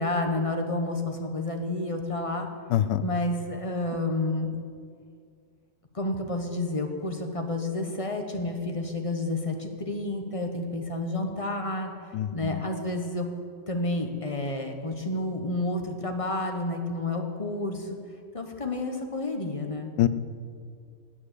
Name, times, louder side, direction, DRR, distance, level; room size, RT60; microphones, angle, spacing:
voice 1, 0.0-2.5 3.0-4.5 5.9-11.9 12.3-13.3 13.7-18.0 18.3-19.9, left 2 dB, 25° left, 4 dB, 0.9 m, -30 dB
voice 2, 2.7-3.0 12.1-12.6 20.0-20.1, left 12 dB, 90° left, 14 dB, 1.3 m, -24 dB
10.0 x 9.5 x 8.3 m, 2.2 s
omnidirectional pair, 1.8 m